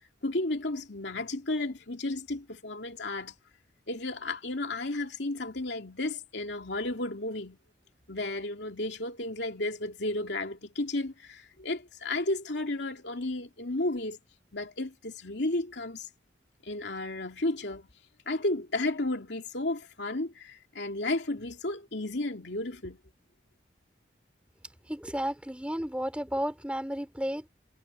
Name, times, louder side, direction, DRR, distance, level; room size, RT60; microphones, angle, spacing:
voice 1, 0.2-3.3 3.9-7.6 8.1-14.2 14.5-16.1 16.6-17.9 18.3-23.0, left 2 dB, 75° left, 2.5 m, -33 dB
voice 2, 24.9-27.5, equal, 5° right, 3.4 m, -33 dB
head